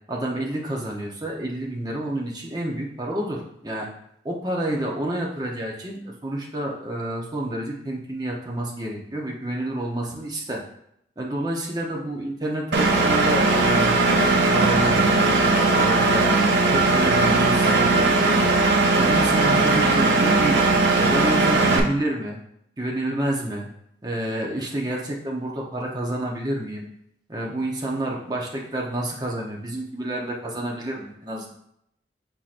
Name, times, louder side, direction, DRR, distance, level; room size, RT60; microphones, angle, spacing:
voice 1, 0.1-3.9 4.2-10.6 11.2-16.2 16.7-18.5 18.9-20.6 21.0-22.4 22.8-23.7 24.0-26.9 27.3-31.5, right 1 dB, 20° right, -2 dB, 0.7 m, -29 dB
Engine, 12.7-21.8, right 3 dB, 75° right, 0.6 m, -19 dB
5.7 x 3.7 x 2.5 m, 0.74 s
head